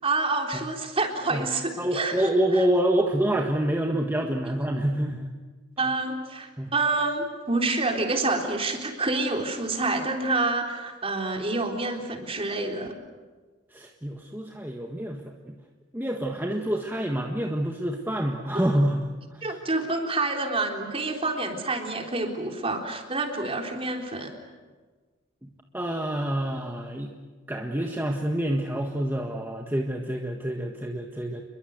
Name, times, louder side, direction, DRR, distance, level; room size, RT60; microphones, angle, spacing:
voice 1, 0.0-2.6 5.8-13.0 19.4-24.3, right 3 dB, 30° right, 3 dB, 3.7 m, -28 dB
voice 2, 1.8-5.3 6.6-6.7 13.7-15.5 15.9-19.4 25.4-25.5 25.7-27.1 27.5-31.4, right 1 dB, 10° right, 1 dB, 1.6 m, -27 dB
29.0 x 22.0 x 8.1 m, 1.4 s
head